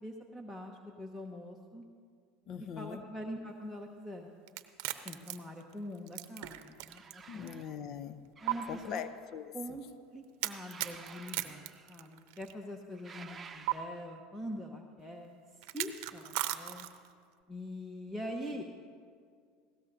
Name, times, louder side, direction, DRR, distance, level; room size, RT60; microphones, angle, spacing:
voice 1, 0.0-1.9 2.6-4.3 5.0-7.6 8.4-9.0 9.5-9.8 10.1-16.9 17.5-18.7, equal, 5° left, 2 dB, 1.0 m, -44 dB
voice 2, 2.5-3.0 7.3-8.3 8.7-9.5, left 8 dB, 50° left, 12 dB, 0.7 m, -41 dB
sound 1, 4.5-7.1 7.5-7.6 8.5-8.6 10.4-12.5 13.7-13.8 15.6-17.1, right 17 dB, 65° right, 0.7 m, -37 dB
sound 2, 6.8-7.8 8.4-9.4 10.5-12.1 12.9-14.2, right 5 dB, 25° right, 0.8 m, -52 dB
19.5 x 16.5 x 2.7 m, 2.1 s
hypercardioid pair, 85°, 0 cm